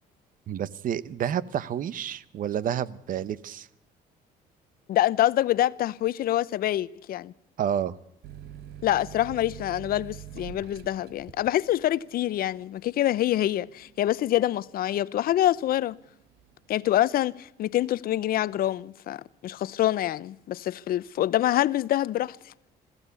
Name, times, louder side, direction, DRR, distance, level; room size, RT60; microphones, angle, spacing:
voice 1, 0.5-3.7 7.6-7.9, right 9 dB, 55° right, 0.9 m, -29 dB
voice 2, 4.9-7.3 8.8-16.0 16.7-22.4, left 13 dB, 60° left, 0.7 m, -26 dB
sound 1, 8.2-15.5 15.9-16.7, right 10 dB, 75° right, 1.2 m, -45 dB
21.0 x 15.5 x 8.3 m
cardioid pair, 110°, 17 cm